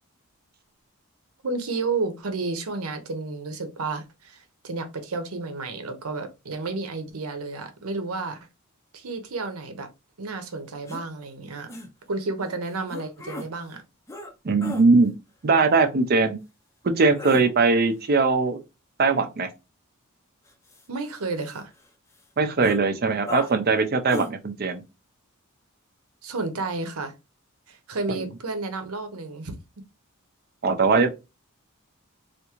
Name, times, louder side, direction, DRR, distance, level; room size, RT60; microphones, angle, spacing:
voice 1, 1.4-8.5 8.9-9.9 10.2-11.7 12.1-13.8 20.9-21.7 26.2-27.1 27.7-29.6, right 3 dB, 80° right, 0.8 m, -31 dB
sound 1, 10.9-11.0 11.7-11.9 12.9-13.5 14.1-14.3 14.6-14.9 17.0-17.4 20.5-21.8 22.2-22.3 22.6-22.8 23.3-23.5 24.1-24.3, left 2 dB, 15° left, 0.5 m, -36 dB
voice 2, 14.4-15.1 15.4-16.4 16.8-18.6 19.0-19.5 22.4-24.8 28.1-28.3 30.6-31.1, right 4 dB, 45° right, 0.5 m, -20 dB
3.6 x 2.5 x 2.9 m
head